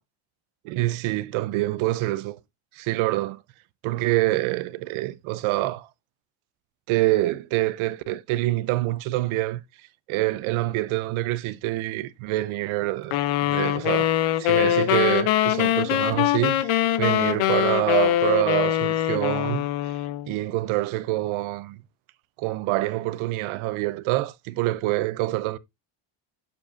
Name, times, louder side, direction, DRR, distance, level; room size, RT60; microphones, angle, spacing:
voice 1, 0.6-2.4 2.7-3.4 3.8-5.9 6.9-9.6 10.1-13.2 13.4-14.1 14.4-19.6 20.3-21.8 22.4-25.6, right 17 dB, 75° right, 0.8 m, -26 dB
sound 1, 13.1-20.3, left 13 dB, 75° left, 0.8 m, -23 dB
7.3 x 6.9 x 2.6 m
cardioid pair, 120°, 50 cm